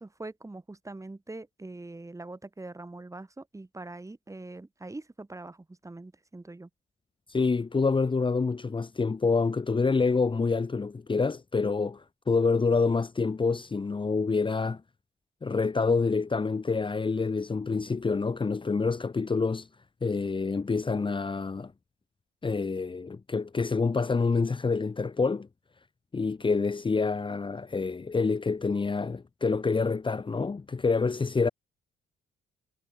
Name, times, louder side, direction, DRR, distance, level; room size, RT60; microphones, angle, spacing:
voice 1, 0.0-6.7, right 2 dB, 15° right, 3.3 m, -43 dB
voice 2, 7.3-14.8 15.4-19.7 20.0-21.7 22.4-25.5 26.1-31.5, left 4 dB, 25° left, 1.3 m, -27 dB
cardioid pair, 90°, 20 cm